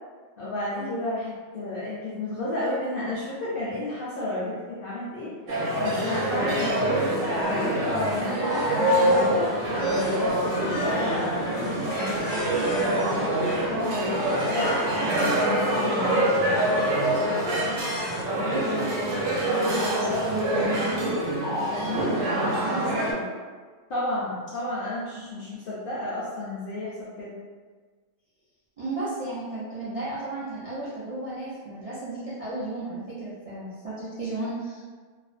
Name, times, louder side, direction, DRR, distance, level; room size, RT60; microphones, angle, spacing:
voice 1, 0.4-5.3 5.8-12.2 13.0-16.6 21.8-22.0 23.9-27.3, left 1 dB, 65° left, -7 dB, 0.6 m, -32 dB
sound 1, 5.5-23.1, right 1 dB, 80° right, 1.0 m, -25 dB
sound 2, 7.3-15.0 15.5-16.2 16.5-18.2, left 2 dB, 80° left, 1.0 m, -38 dB
voice 2, 18.4-18.9 19.4-21.2 21.7-23.3 25.4-25.6 28.8-34.8, right 2 dB, 60° right, -10 dB, 0.3 m, -34 dB
2.5 x 2.1 x 2.4 m, 1.5 s
omnidirectional pair, 1.4 m